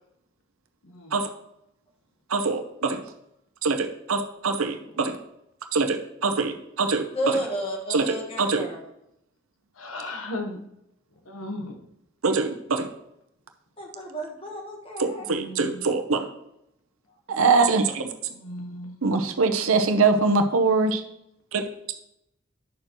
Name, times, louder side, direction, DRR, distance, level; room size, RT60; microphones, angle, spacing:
voice 1, 2.3-3.0 3.6-5.2 5.7-7.0 7.9-8.7 12.2-12.9 15.0-16.3 17.3-18.1 19.0-21.0 21.5-21.6, right 4 dB, 90° right, 5 dB, 0.8 m, -23 dB
voice 2, 7.1-8.8 13.8-15.3, right 1 dB, 30° left, 1 dB, 1.6 m, -31 dB
voice 3, 9.8-10.6 11.3-11.7 15.3-15.9 18.3-18.9, left 1 dB, 85° left, 4 dB, 1.1 m, -36 dB
10.5 x 6.7 x 3.0 m, 0.81 s
head